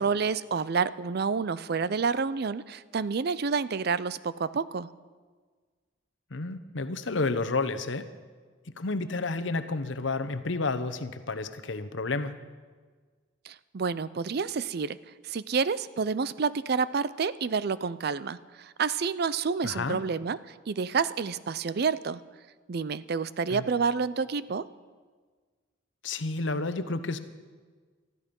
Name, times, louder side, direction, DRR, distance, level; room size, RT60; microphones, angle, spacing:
voice 1, 0.0-4.9 13.5-15.0 15.2-20.4 20.7-22.2 22.7-24.7, right 5 dB, 55° right, 17 dB, 0.5 m, -29 dB
voice 2, 6.3-8.1 8.7-12.4 19.6-20.0 23.5-23.6 26.0-27.2, left 3 dB, 70° left, 10 dB, 0.9 m, -30 dB
19.5 x 13.5 x 5.4 m, 1.5 s
head